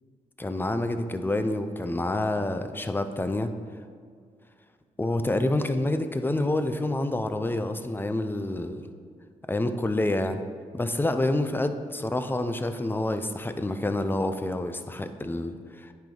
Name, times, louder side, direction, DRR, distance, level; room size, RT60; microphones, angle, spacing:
voice 1, 0.4-3.5 5.0-8.9 9.5-10.4 10.7-15.9, left 1 dB, 15° left, 9 dB, 0.6 m, -28 dB
10.5 x 5.1 x 3.9 m, 2.1 s
cardioid pair, 75°, 14 cm